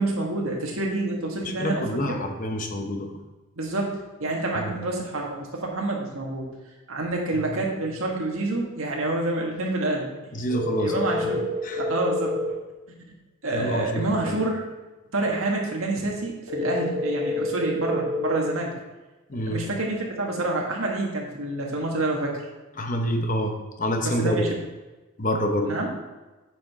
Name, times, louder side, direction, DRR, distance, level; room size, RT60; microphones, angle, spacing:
voice 1, 0.0-2.2 3.6-6.5 6.9-10.1 10.8-12.4 13.4-14.6 15.1-18.7 19.5-22.4 24.0-24.5 25.6-25.9, right 2 dB, 75° right, -1 dB, 1.8 m, -28 dB
voice 2, 1.4-3.2 4.5-4.7 7.3-7.5 10.3-11.3 11.6-11.9 13.5-14.4 19.3-19.6 22.8-24.5 25.2-25.8, equal, 40° left, 4 dB, 0.8 m, -27 dB
sound 1, 10.5-12.5 16.5-18.5, left 1 dB, 55° left, 2.4 m, -28 dB
8.8 x 6.4 x 3.7 m, 1.2 s
head